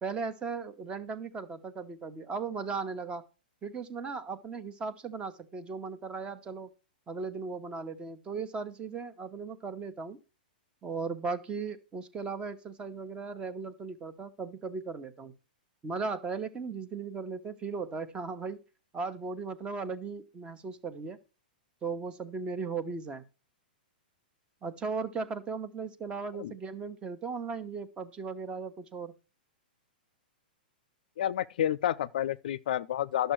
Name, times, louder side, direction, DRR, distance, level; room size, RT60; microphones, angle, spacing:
voice 1, 0.0-3.2 3.6-6.7 7.1-10.2 10.8-15.3 15.8-18.6 18.9-21.2 21.8-23.2 24.6-29.1, right 4 dB, 20° right, 1.2 m, -37 dB
voice 2, 31.2-33.3, left 11 dB, 65° left, 0.5 m, -30 dB
11.5 x 6.8 x 4.6 m
hypercardioid pair, 115°, 5 cm